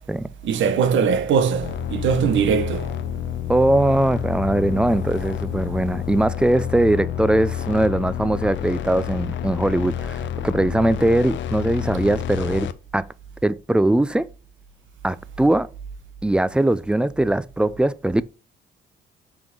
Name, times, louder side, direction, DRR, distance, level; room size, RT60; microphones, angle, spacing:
voice 1, 0.4-2.9, right 6 dB, 70° right, 0.9 m, -21 dB
sound 1, 1.6-12.7, left 10 dB, 70° left, 0.6 m, -29 dB
voice 2, 3.5-13.1 13.4-14.3 15.0-15.7 16.2-18.2, right 1 dB, 5° right, 0.4 m, -21 dB
6.0 x 3.6 x 6.0 m
cardioid pair, 90°, 20 cm